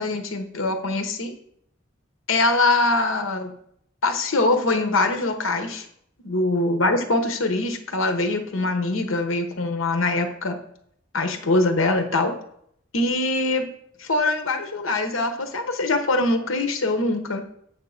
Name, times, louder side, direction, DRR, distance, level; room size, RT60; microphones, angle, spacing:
voice 1, 0.0-1.3 2.3-3.5 4.0-5.9 6.2-10.6 11.1-12.3 12.9-13.7 14.0-17.4, left 2 dB, 90° left, 6 dB, 1.0 m, -23 dB
7.5 x 3.7 x 6.5 m, 0.70 s
head